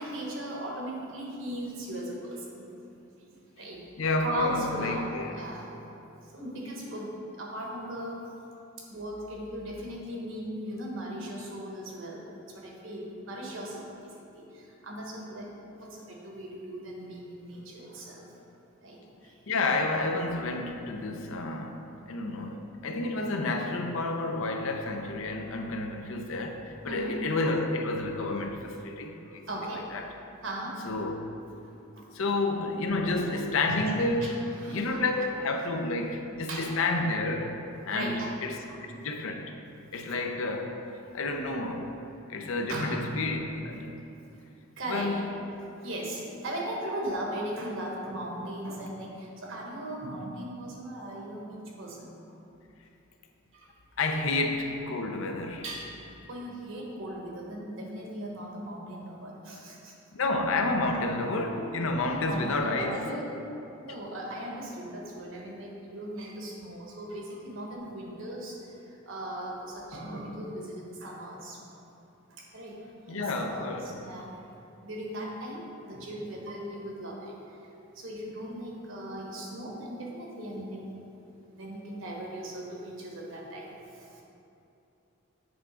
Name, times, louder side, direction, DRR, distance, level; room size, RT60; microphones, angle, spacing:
voice 1, 0.0-2.6 3.3-3.8 4.2-5.7 6.3-8.2 8.8-12.3 12.5-18.3 18.8-19.4 26.8-27.2 29.3-29.9 30.4-30.9 31.6-31.7 32.0-32.1 33.7-33.9 34.2-35.0 36.5-36.7 37.9-38.4 38.7-38.8 41.0-41.2 42.7-43.1 44.8-45.1 45.8-52.2 53.5-53.7 55.6-56.0 56.3-59.9 62.0-63.3 63.8-68.6 68.8-71.6 72.3-72.8 73.1-74.3 74.8-77.3 77.9-80.9 81.5-84.2, right 1 dB, 65° right, 1.2 m, -38 dB
voice 2, 4.0-5.4 19.5-29.4 29.9-30.1 30.8-31.2 32.1-34.4 34.7-37.6 37.9-39.5 39.9-40.8 41.1-42.0 42.3-44.0 44.9-45.3 54.0-55.6 60.1-63.0 73.1-74.0, left 2 dB, 70° left, 0.6 m, -30 dB
7.9 x 3.6 x 5.0 m
head